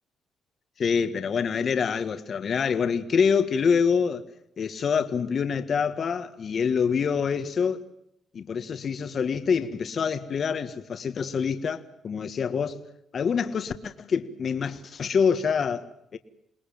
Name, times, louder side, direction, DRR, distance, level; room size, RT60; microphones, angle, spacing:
voice 1, 0.8-4.2 4.6-7.8 8.3-12.8 13.1-16.2, left 6 dB, 50° left, 1.8 m, -26 dB
28.0 x 20.0 x 7.4 m
cardioid pair, 90°, 0 cm